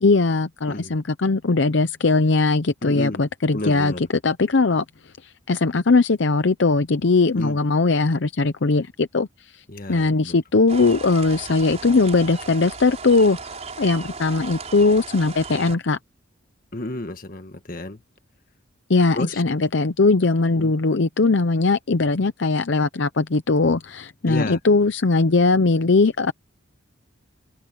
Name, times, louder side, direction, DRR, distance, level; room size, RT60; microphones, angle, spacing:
voice 1, 0.0-4.8 5.2-9.6 9.9-13.4 13.8-16.0 18.9-26.3, left 3 dB, 60° left, 0.7 m, -20 dB
voice 2, 2.8-3.2 3.5-4.0 7.3-7.6 9.7-10.4 16.7-18.0 19.1-19.4 20.5-20.7 24.3-24.6, left 1 dB, 45° left, 1.6 m, -31 dB
sound 1, 10.7-15.8, right 4 dB, 35° right, 5.7 m, -36 dB
head